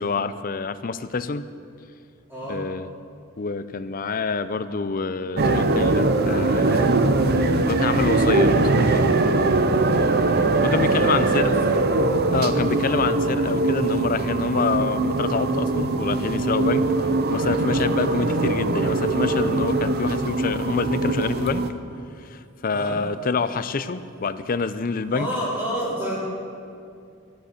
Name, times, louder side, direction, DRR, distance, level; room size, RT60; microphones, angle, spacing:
voice 1, 0.0-1.4 2.5-2.9 3.4-6.9 7.7-8.5 8.8-9.1 10.0-10.1 10.6-11.5 12.3-16.8 17.3-21.6 22.2-25.3, left 4 dB, 40° left, 13 dB, 0.5 m, -26 dB
voice 2, 2.3-2.6 10.0-11.8 22.7-23.0 25.1-26.2, equal, 10° right, -8 dB, 3.9 m, -31 dB
sound 1, 5.4-21.7, right 2 dB, 45° right, 0.6 m, -21 dB
13.0 x 11.5 x 6.5 m, 2.4 s
head